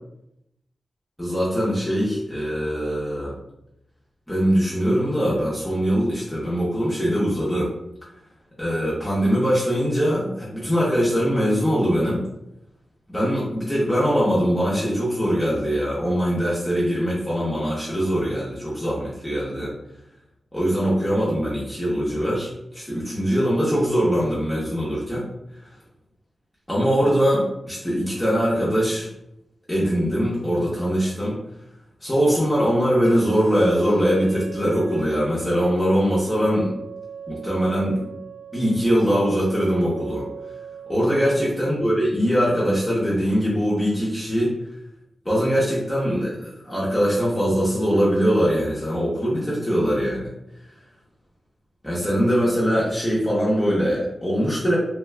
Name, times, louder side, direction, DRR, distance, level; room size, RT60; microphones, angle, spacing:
voice 1, 1.2-3.3 4.3-7.7 8.6-12.2 13.1-19.7 20.5-25.3 26.7-29.1 29.7-31.4 32.0-36.7 37.3-38.0 38.5-40.2 40.9-44.5 45.2-50.3 51.8-54.8, equal, 10° left, -8 dB, 0.7 m, -22 dB
sound 1, 33.0-41.0, right 7 dB, 70° right, 0.3 m, -39 dB
2.7 x 2.2 x 3.3 m, 0.84 s
wide cardioid pair, 125°, 0 cm